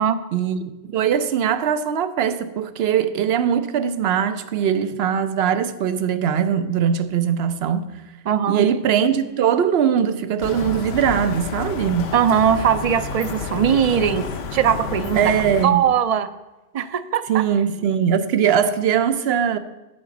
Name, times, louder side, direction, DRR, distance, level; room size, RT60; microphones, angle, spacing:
voice 1, 0.3-7.8 8.5-12.1 15.2-15.8 17.3-19.6, right 8 dB, 75° right, 0.9 m, -21 dB
voice 2, 8.3-8.6 12.1-14.2 14.5-15.3 15.6-16.3 16.7-17.4, right 8 dB, 50° right, 0.5 m, -20 dB
sound 1, 10.4-15.7, left 5 dB, 75° left, 1.0 m, -30 dB
8.5 x 4.9 x 7.1 m
omnidirectional pair, 1.1 m